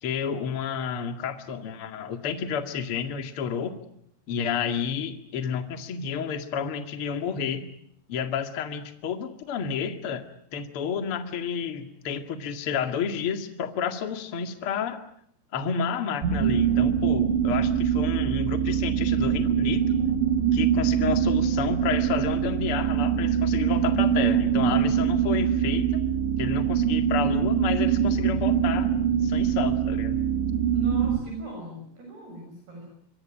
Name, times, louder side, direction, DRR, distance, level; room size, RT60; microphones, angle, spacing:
voice 1, 0.0-3.8 4.3-7.7 8.1-10.2 10.5-15.0 15.5-19.9 20.5-26.0 26.4-28.9 29.2-30.2, left 7 dB, 40° left, 7 dB, 2.2 m, -30 dB
sound 1, 16.2-31.2, right 8 dB, 85° right, 4.2 m, -23 dB
voice 2, 30.7-32.9, right 2 dB, 65° right, 2 dB, 8.3 m, -38 dB
26.0 x 23.0 x 9.0 m, 0.69 s
omnidirectional pair, 5.0 m